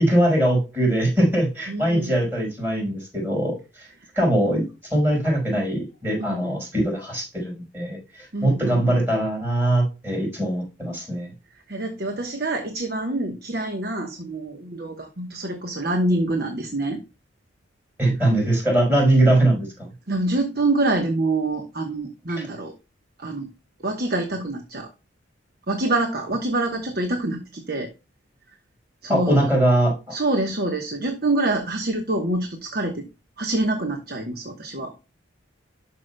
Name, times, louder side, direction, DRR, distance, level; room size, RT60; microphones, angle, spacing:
voice 1, 0.0-3.9 4.1-11.3 18.0-19.7 22.3-22.4 29.1-30.1, right 1 dB, 10° right, -1 dB, 5.1 m, -21 dB
voice 2, 1.7-2.1 6.2-6.5 8.3-9.0 11.7-17.0 20.1-22.7 23.2-23.5 23.8-24.9 25.7-27.9 29.0-29.5 30.1-33.1 33.4-34.9, right 2 dB, 50° right, 4 dB, 1.1 m, -26 dB
12.0 x 5.7 x 2.2 m, 0.29 s
head